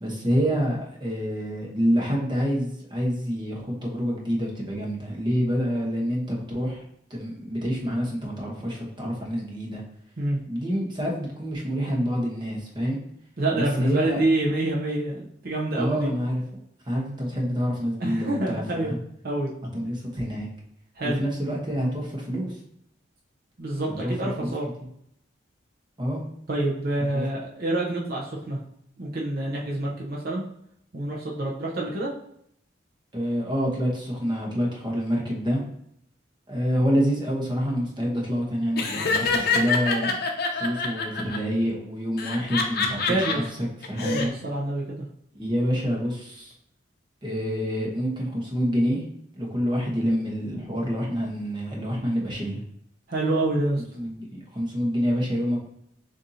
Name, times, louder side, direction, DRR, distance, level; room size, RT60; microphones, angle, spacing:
voice 1, 0.0-6.8 7.1-9.8 10.5-13.0 13.5-14.2 15.8-16.4 16.9-19.0 19.7-20.5 21.0-22.5 24.0-24.1 24.4-24.5 26.0-26.2 27.1-27.2 33.1-35.6 36.5-40.2 40.5-43.4 43.9-44.3 45.3-46.5 47.2-49.0 49.4-52.6 53.9-55.7, equal, 25° right, -1 dB, 1.0 m, -27 dB
voice 2, 13.4-16.1 18.0-18.9 19.2-19.5 20.9-21.2 23.6-24.7 26.5-28.6 29.0-30.4 30.9-32.1 43.1-43.5 44.0-45.0 53.1-53.8, right 2 dB, 55° right, -3 dB, 0.7 m, -27 dB
Laughter, 38.8-41.4 42.2-43.3 43.8-44.3, left 4 dB, 55° left, 0.6 m, -26 dB
6.6 x 2.6 x 2.7 m, 0.71 s
head